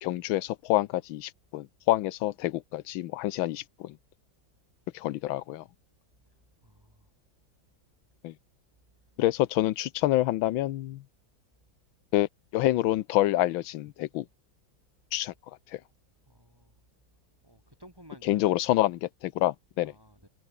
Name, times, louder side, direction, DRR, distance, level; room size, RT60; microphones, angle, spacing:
voice 1, 0.0-3.9 4.9-5.6 8.2-8.3 9.2-11.0 12.1-12.3 12.5-14.2 15.1-15.3 18.2-19.9, left 15 dB, 80° left, 1.5 m, -27 dB
voice 2, 6.6-7.1 16.3-16.7 17.4-18.6 19.8-20.3, equal, 10° right, 4.9 m, -54 dB
omnidirectional pair, 2.2 m